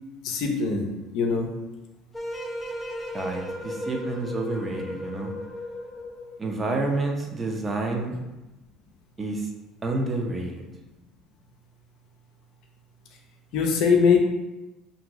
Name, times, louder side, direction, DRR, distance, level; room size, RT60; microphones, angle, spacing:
voice 1, 0.2-0.9 1.1-1.5 13.5-14.2, left 5 dB, 70° left, 3 dB, 0.5 m, -21 dB
sound 1, 2.1-6.5, left 1 dB, 10° left, 0.7 m, -35 dB
voice 2, 3.1-5.3 6.4-8.2 9.2-9.5 9.8-10.6, right 2 dB, 25° right, 1 dB, 0.5 m, -29 dB
2.6 x 2.5 x 2.9 m, 1.1 s
supercardioid pair, 85°, 0 cm